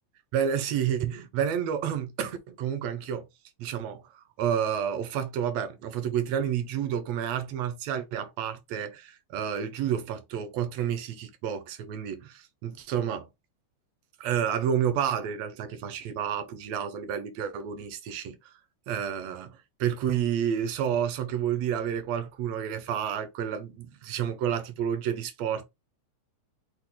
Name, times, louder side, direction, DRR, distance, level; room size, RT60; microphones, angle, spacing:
voice 1, 0.3-3.3 3.6-13.3 14.2-18.5 18.9-25.6, right 9 dB, 70° right, 1.7 m, -30 dB
6.1 x 2.4 x 3.5 m
omnidirectional pair, 3.6 m